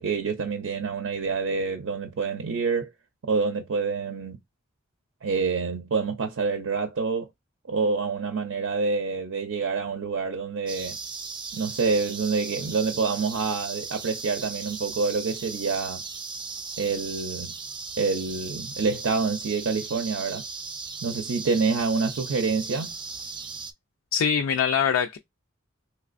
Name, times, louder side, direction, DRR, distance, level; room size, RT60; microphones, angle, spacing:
voice 1, 0.0-2.9 3.2-4.4 5.2-7.3 7.7-11.0 11.5-16.0 16.8-17.5 18.0-20.4 21.0-22.9, right 4 dB, 75° right, 0.5 m, -27 dB
sound 1, 10.7-23.7, right 4 dB, 25° right, 0.4 m, -37 dB
voice 2, 24.1-25.2, left 7 dB, 75° left, 0.3 m, -23 dB
3.2 x 3.1 x 2.5 m
head